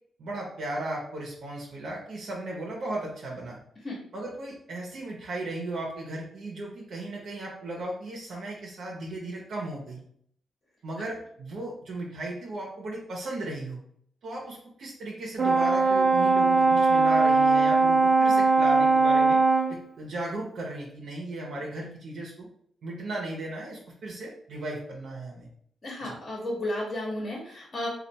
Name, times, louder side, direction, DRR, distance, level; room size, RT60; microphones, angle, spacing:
voice 1, 0.2-3.6 4.1-10.0 10.8-13.8 14.2-19.4 19.7-22.5 22.8-25.5 26.0-26.1, right 1 dB, 70° right, -3 dB, 0.9 m, -36 dB
Brass instrument, 15.4-19.8, right 3 dB, 40° right, 0.6 m, -20 dB
voice 2, 25.8-27.9, left 1 dB, 35° left, -3 dB, 1.2 m, -33 dB
3.3 x 2.4 x 4.1 m, 0.66 s
cardioid pair, 85°, 0 cm